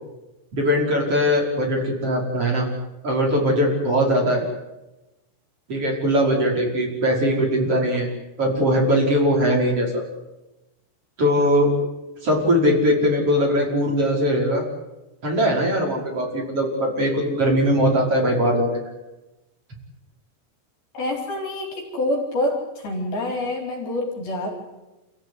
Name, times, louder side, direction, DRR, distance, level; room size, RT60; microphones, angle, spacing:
voice 1, 0.5-2.7 3.0-4.4 5.7-8.1 8.4-10.0 11.2-11.7 12.2-14.7 15.2-18.8, equal, 35° right, -1 dB, 6.2 m, -20 dB
voice 2, 20.9-24.5, left 1 dB, 60° left, 2 dB, 5.7 m, -26 dB
28.5 x 16.0 x 9.7 m, 1.0 s
omnidirectional pair, 4.8 m